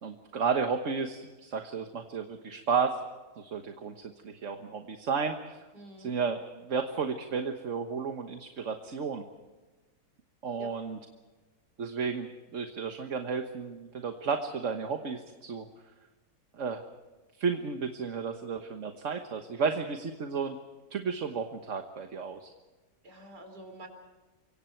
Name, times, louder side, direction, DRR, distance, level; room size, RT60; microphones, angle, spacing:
voice 1, 0.0-3.0 3.4-5.6 6.0-9.2 10.4-11.0 11.8-15.7 16.5-16.8 17.4-20.6 20.9-22.5, right 5 dB, 50° right, 5 dB, 1.6 m, -33 dB
voice 2, 5.7-6.1 10.6-10.7 23.0-23.9, right 1 dB, 85° right, 5 dB, 4.4 m, -48 dB
29.5 x 24.5 x 4.5 m, 1.2 s
omnidirectional pair, 1.7 m